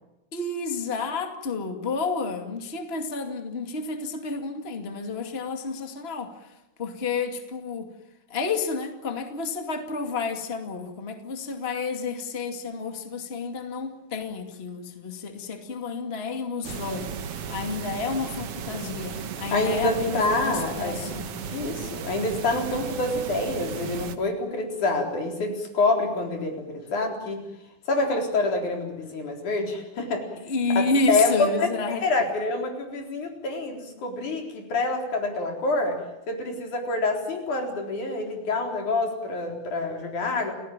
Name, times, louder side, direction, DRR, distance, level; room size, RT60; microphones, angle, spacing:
voice 1, 0.3-6.3 6.8-7.9 8.3-21.3 30.4-32.0, left 4 dB, 20° left, 5 dB, 2.3 m, -30 dB
sound 1, 16.6-24.2, right 7 dB, 55° right, 2.1 m, -35 dB
voice 2, 19.5-21.0 21.5-27.4 27.9-30.3 30.8-36.0 36.3-40.6, left 2 dB, 75° left, 3 dB, 5.6 m, -27 dB
29.0 x 17.5 x 9.0 m, 0.96 s
omnidirectional pair, 3.5 m